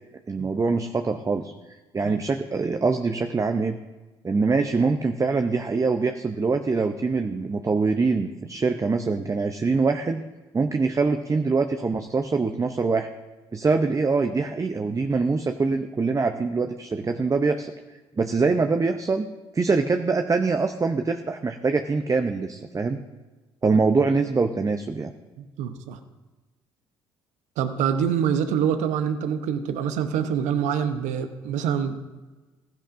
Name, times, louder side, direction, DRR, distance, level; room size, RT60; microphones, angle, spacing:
voice 1, 0.3-1.5 1.9-3.8 4.2-10.2 10.5-13.1 13.5-17.7 18.2-19.3 19.5-23.0 23.6-25.1, right 4 dB, 25° right, 6 dB, 0.7 m, -24 dB
voice 2, 25.4-26.0 27.6-32.0, right 8 dB, 70° right, 9 dB, 0.9 m, -25 dB
15.0 x 10.5 x 2.6 m, 1.2 s
hypercardioid pair, 50°, 13 cm